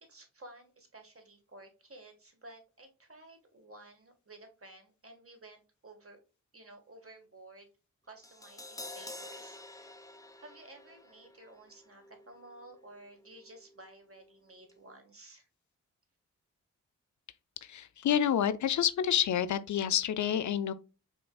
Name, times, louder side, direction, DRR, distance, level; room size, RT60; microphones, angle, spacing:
voice 1, 0.0-6.2 6.5-7.7 8.0-9.9 10.4-15.5, right 2 dB, 40° right, 1.6 m, -54 dB
Crash cymbal, 8.2-14.4 14.7-14.8, left 2 dB, 10° left, 0.7 m, -50 dB
voice 2, 17.6-20.7, left 9 dB, 60° left, 0.4 m, -28 dB
5.2 x 3.2 x 2.3 m
supercardioid pair, 40°, 33 cm